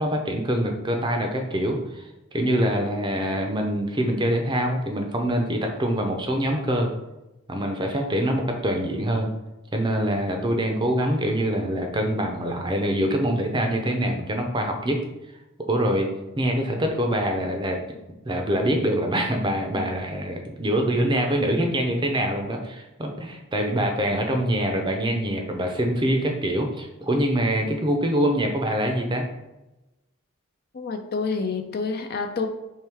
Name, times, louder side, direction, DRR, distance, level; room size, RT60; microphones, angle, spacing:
voice 1, 0.0-2.1 2.3-6.9 7.5-9.3 9.7-15.0 15.7-16.1 16.4-17.8 18.2-29.3, equal, 20° right, 3 dB, 0.5 m, -24 dB
voice 2, 30.7-32.5, left 4 dB, 45° left, 5 dB, 0.4 m, -28 dB
4.6 x 3.2 x 3.4 m, 0.98 s
head